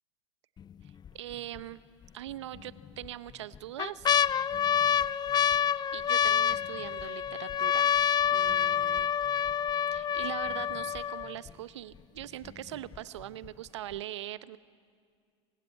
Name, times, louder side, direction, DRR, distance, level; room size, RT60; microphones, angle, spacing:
sound 1, 0.6-1.1 1.6-1.7 2.6-3.1 3.5-11.5 12.2-12.3 12.5-13.0 13.4-13.5, left 9 dB, 30° left, 0.5 m, -27 dB
voice 1, 0.8-1.8 2.1-4.1 5.9-7.9 8.3-9.1 9.9-14.6, right 13 dB, 80° right, 16 dB, 0.8 m, -41 dB
26.5 x 16.5 x 8.9 m, 2.2 s
hypercardioid pair, 85°, 15 cm